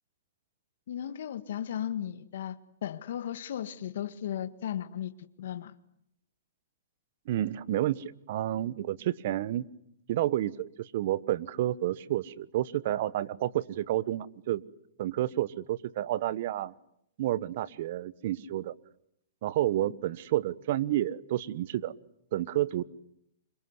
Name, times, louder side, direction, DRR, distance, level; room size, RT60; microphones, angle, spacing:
voice 1, 0.9-5.7 19.8-19.9, left 10 dB, 65° left, 11 dB, 1.8 m, -36 dB
voice 2, 7.2-9.7 10.1-14.6 15.0-16.7 17.2-18.7 19.4-21.9 22.3-22.8, right 13 dB, 55° right, 19 dB, 1.3 m, -30 dB
28.5 x 26.0 x 8.1 m, 0.75 s
hypercardioid pair, 135°, 0 cm